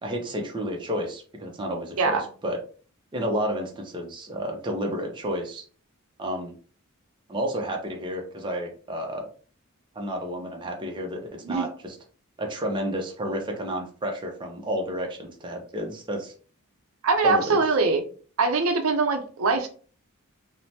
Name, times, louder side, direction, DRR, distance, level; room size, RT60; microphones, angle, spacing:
voice 1, 0.0-2.6 3.1-5.6 6.2-6.5 7.3-9.3 10.0-12.0 12.4-16.3 17.2-17.4, equal, 20° right, 2 dB, 0.5 m, -31 dB
voice 2, 17.0-18.0 18.4-19.7, right 4 dB, 75° right, 6 dB, 0.5 m, -22 dB
3.2 x 2.0 x 2.7 m, 0.41 s
head